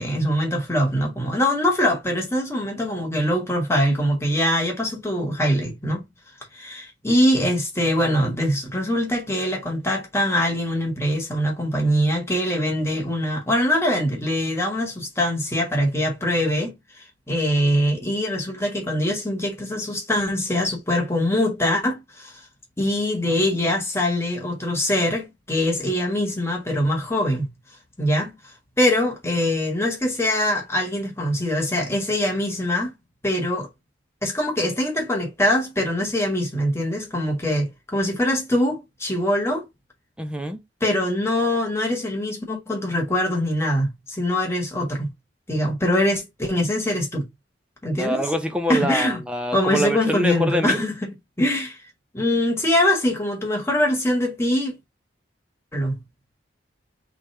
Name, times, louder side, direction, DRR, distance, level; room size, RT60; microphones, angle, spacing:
voice 1, 0.0-6.0 6.5-16.8 17.3-22.3 22.8-27.5 28.0-28.3 28.8-32.9 33.2-33.7 34.2-39.7 40.8-45.1 45.5-47.3 47.8-48.2 48.7-49.2 49.5-51.8 52.1-54.8 55.7-56.0, left 1 dB, 15° left, 1.4 m, -23 dB
voice 2, 40.2-40.6 47.9-50.8, equal, 5° right, 0.7 m, -25 dB
3.4 x 3.3 x 4.3 m
head